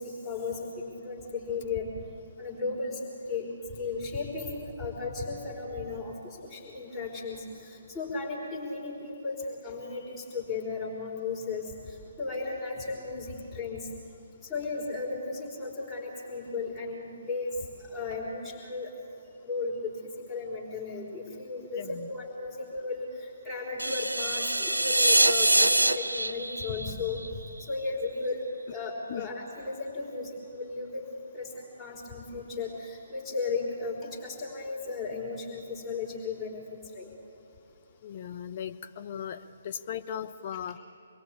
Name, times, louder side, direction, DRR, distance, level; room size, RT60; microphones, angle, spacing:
voice 1, 0.0-1.9 2.4-3.0 3.3-3.5 3.8-13.9 14.5-17.5 17.8-18.9 19.4-27.4 27.7-28.4 28.7-31.1 31.3-37.1, left 4 dB, 10° left, -6 dB, 4.6 m, -35 dB
voice 2, 21.8-22.1 29.1-29.3 38.0-40.8, left 9 dB, 40° left, 8 dB, 1.0 m, -38 dB
sound 1, 23.8-27.9, right 1 dB, 80° right, 1.0 m, -25 dB
26.0 x 21.5 x 8.7 m, 2.5 s
figure-of-eight pair, 135°, 0 cm